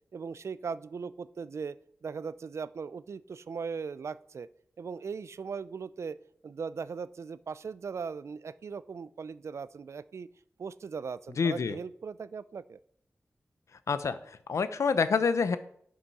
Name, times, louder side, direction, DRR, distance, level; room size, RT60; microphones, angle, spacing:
voice 1, 0.1-1.8 2.0-4.5 4.8-6.2 6.4-10.3 10.6-12.8, right 5 dB, 70° right, 17 dB, 0.3 m, -39 dB
voice 2, 11.4-11.8 13.9-15.6, left 5 dB, 85° left, 12 dB, 0.6 m, -27 dB
11.0 x 6.2 x 4.1 m, 0.67 s
wide cardioid pair, 90°, 5 cm